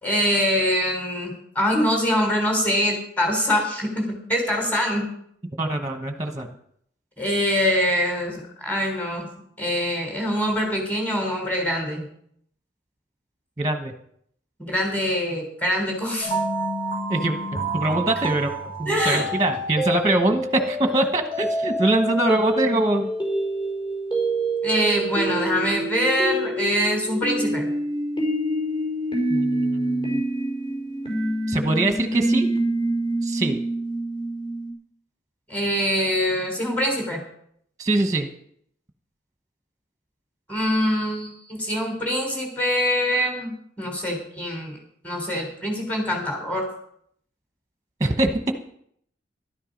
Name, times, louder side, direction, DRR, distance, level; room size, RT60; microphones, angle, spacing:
voice 1, 0.0-5.1 7.2-9.3 9.6-12.0 14.6-16.4 18.9-19.3 24.6-27.7 35.5-37.2 40.5-44.8 45.0-46.7, equal, 10° left, 1 dB, 3.6 m, -24 dB
voice 2, 5.6-6.5 13.6-13.9 17.1-18.5 18.8-23.1 29.3-30.2 31.5-32.5 33.2-33.6 37.8-38.3 48.0-48.5, right 2 dB, 20° right, 6 dB, 1.1 m, -23 dB
sound 1, 16.2-34.7, right 1 dB, 30° left, 5.0 m, -27 dB
13.5 x 12.5 x 5.2 m, 0.67 s
head